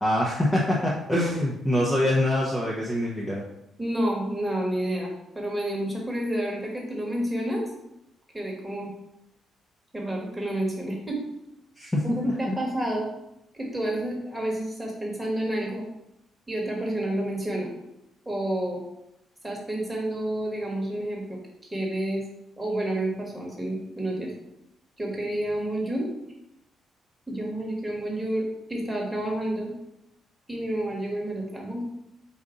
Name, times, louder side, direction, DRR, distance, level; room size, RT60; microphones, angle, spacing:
voice 1, 0.0-3.4 11.8-12.6, left 1 dB, 15° left, -4 dB, 0.8 m, -25 dB
voice 2, 3.8-7.7 8.3-8.9 9.9-11.2 12.0-13.1 13.5-15.8 16.5-17.7 18.2-18.8 19.4-21.4 21.7-22.2 22.6-24.3 25.0-26.1 27.3-29.7 30.5-31.9, right 1 dB, 5° right, -2 dB, 1.4 m, -29 dB
4.8 x 2.6 x 3.8 m, 0.84 s
cardioid pair, 90°, 0 cm